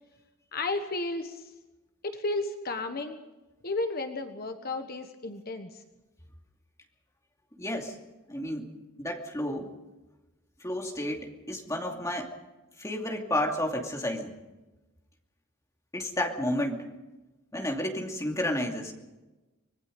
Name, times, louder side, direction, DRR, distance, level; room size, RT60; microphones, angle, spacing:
voice 1, 0.5-1.5 2.0-3.2 3.6-5.8, left 2 dB, 45° left, 7 dB, 1.3 m, -33 dB
voice 2, 7.6-7.9 8.3-8.7 9.0-9.7 10.6-12.3 12.8-14.3 15.9-16.9 17.5-18.9, left 1 dB, 15° left, 2 dB, 2.5 m, -31 dB
25.5 x 20.5 x 5.3 m, 1.1 s
head